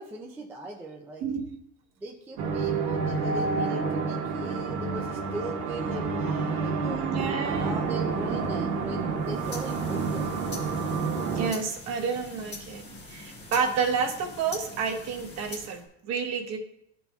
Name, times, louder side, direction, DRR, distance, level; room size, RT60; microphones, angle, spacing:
voice 1, 0.0-1.3 2.0-7.1 7.6-10.3, right 2 dB, 5° right, -1 dB, 0.3 m, -39 dB
sound 1, 2.4-11.5, right 4 dB, 90° right, 1.2 m, -29 dB
voice 2, 6.8-7.8 11.3-12.8 13.1-16.6, right 6 dB, 45° right, 2 dB, 1.0 m, -30 dB
sound 2, 9.2-15.9, left 2 dB, 30° left, 1.5 m, -43 dB
12.5 x 4.2 x 2.3 m, 0.77 s
cardioid pair, 160°, 36 cm